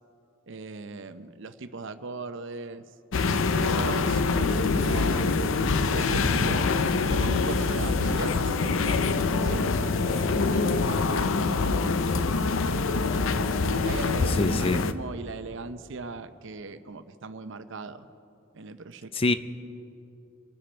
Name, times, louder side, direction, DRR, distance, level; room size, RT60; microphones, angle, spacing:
voice 1, 0.5-2.8 3.5-5.3 5.9-6.6 7.1-11.9 13.6-18.1 18.5-19.1, right 3 dB, 65° right, 11 dB, 0.7 m, -38 dB
sound 1, 3.1-14.9, left 4 dB, 70° left, 0.6 m, -25 dB
voice 2, 14.3-14.8 19.1-19.4, left 3 dB, 30° left, 12 dB, 0.5 m, -25 dB
25.5 x 10.0 x 4.4 m, 2.7 s
head